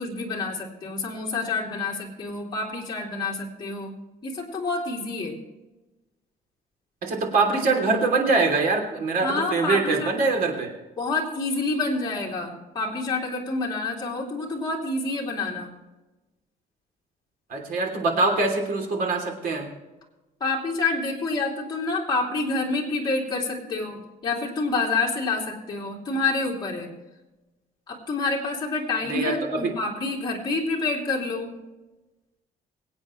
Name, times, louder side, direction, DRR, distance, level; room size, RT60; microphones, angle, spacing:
voice 1, 0.0-3.9 4.2-5.4 9.2-10.1 11.0-15.7 20.4-26.9 27.9-31.5, left 3 dB, 30° left, -4 dB, 2.8 m, -28 dB
voice 2, 7.0-10.7 17.5-19.7 29.0-29.7, right 3 dB, 65° right, 2 dB, 3.1 m, -23 dB
23.5 x 8.7 x 3.2 m, 1.1 s
cardioid pair, 155°, 16 cm